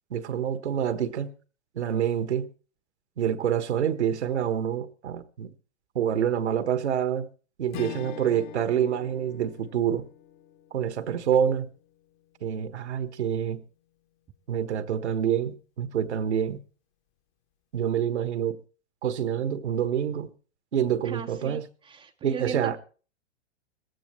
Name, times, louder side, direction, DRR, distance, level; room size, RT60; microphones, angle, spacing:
voice 1, 0.1-1.3 1.7-2.5 3.2-5.5 5.9-7.3 7.6-10.1 10.7-11.7 12.4-13.6 14.5-16.6 17.7-18.6 19.0-20.3 20.7-21.6 22.2-22.8, right 9 dB, 75° right, 1.4 m, -27 dB
Strum, 7.7-12.3, left 13 dB, 45° left, 1.2 m, -44 dB
voice 2, 21.0-22.8, right 8 dB, 15° right, 0.6 m, -38 dB
18.0 x 14.5 x 3.2 m
hypercardioid pair, 115°, 34 cm